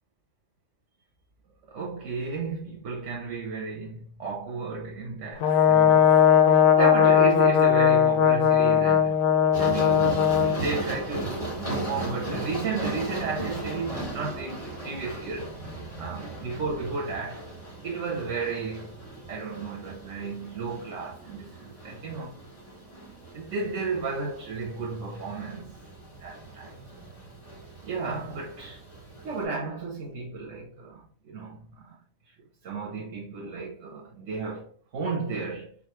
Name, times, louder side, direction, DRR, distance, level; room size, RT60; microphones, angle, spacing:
voice 1, 1.7-6.1 6.8-9.2 9.6-15.5 16.0-17.5 17.8-18.9 19.3-22.4 23.3-25.8 26.2-26.7 27.8-28.8 29.2-32.0 32.3-32.4 32.6-35.7, right 4 dB, 80° right, 1.3 m, -33 dB
Brass instrument, 5.4-10.6, left 8 dB, 70° left, 1.0 m, -19 dB
sound 1, 9.5-29.4, right 1 dB, 25° left, 2.5 m, -37 dB
4.0 x 3.9 x 3.0 m
omnidirectional pair, 1.3 m